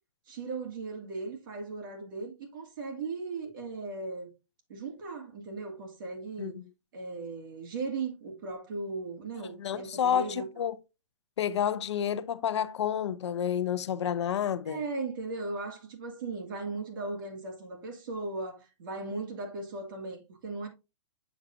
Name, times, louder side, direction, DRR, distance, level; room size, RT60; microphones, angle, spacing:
voice 1, 0.3-4.3 4.7-6.5 6.9-10.4 14.7-20.7, right 3 dB, 45° right, 2.0 m, -37 dB
voice 2, 9.4-10.8 11.4-14.8, left 9 dB, 70° left, 0.6 m, -30 dB
7.1 x 6.0 x 2.5 m
hypercardioid pair, 170°, 15 cm